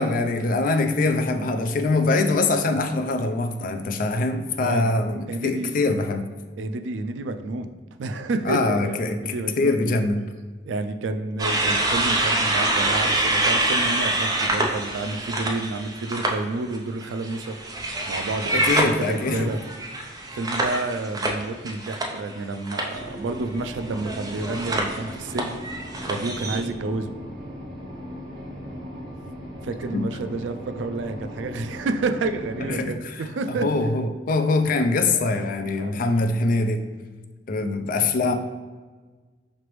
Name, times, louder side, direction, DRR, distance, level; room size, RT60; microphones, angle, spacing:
voice 1, 0.0-6.3 8.4-10.3 18.5-19.5 29.9-30.1 32.7-36.8 37.5-38.4, left 3 dB, 50° left, 7 dB, 0.4 m, -23 dB
voice 2, 5.3-5.8 6.6-9.8 10.7-17.6 18.1-19.6 20.3-25.6 26.1-27.2 29.6-33.7 35.1-35.4 35.7-36.0 37.7-37.8, right 3 dB, 80° right, 8 dB, 0.3 m, -30 dB
sound 1, 11.4-16.3 16.7-22.4 22.7-23.0 23.9-26.6, right 2 dB, 20° right, 0.5 m, -26 dB
sound 2, 22.9-32.8, equal, 55° right, 1.3 m, -38 dB
4.9 x 3.3 x 3.0 m, 1.4 s
head